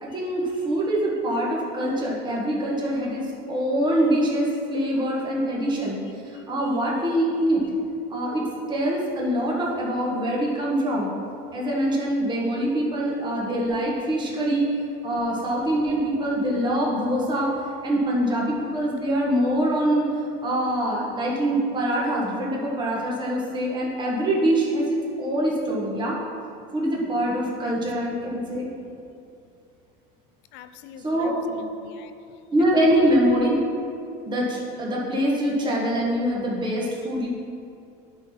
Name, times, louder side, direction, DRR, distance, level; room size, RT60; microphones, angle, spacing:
voice 1, 0.0-6.0 6.2-7.6 8.1-11.1 11.5-14.7 15.0-17.5 17.8-20.1 20.4-26.2 26.7-28.7 31.0-31.4 32.5-33.6 34.2-37.3, right 1 dB, 20° right, -4 dB, 1.6 m, -24 dB
voice 2, 6.3-6.7 27.6-27.7 30.5-32.1 32.8-33.4, left 7 dB, 65° left, 9 dB, 0.6 m, -43 dB
9.7 x 4.2 x 5.7 m, 2.6 s
supercardioid pair, 125°, 20 cm